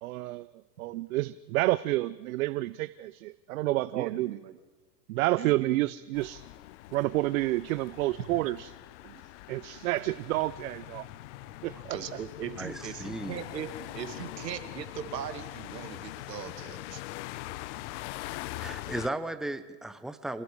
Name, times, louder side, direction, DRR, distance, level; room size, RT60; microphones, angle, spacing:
voice 1, 0.0-0.5 0.8-4.4 5.1-6.4 6.9-8.7 9.0-9.1 9.5-11.1, right 18 dB, 55° right, 16 dB, 0.6 m, -29 dB
voice 2, 3.9-4.5 5.4-5.8 11.9-17.0, right 9 dB, 80° right, 8 dB, 2.3 m, -39 dB
sound 1, 6.1-19.1, left 18 dB, 45° left, 0.7 m, -43 dB
sound 2, 10.3-18.9, left 12 dB, 65° left, 1.3 m, -49 dB
voice 3, 12.6-13.4 18.6-20.4, right 1 dB, ahead, 11 dB, 0.6 m, -36 dB
27.0 x 20.5 x 4.8 m, 1.2 s
hypercardioid pair, 120°, 50 cm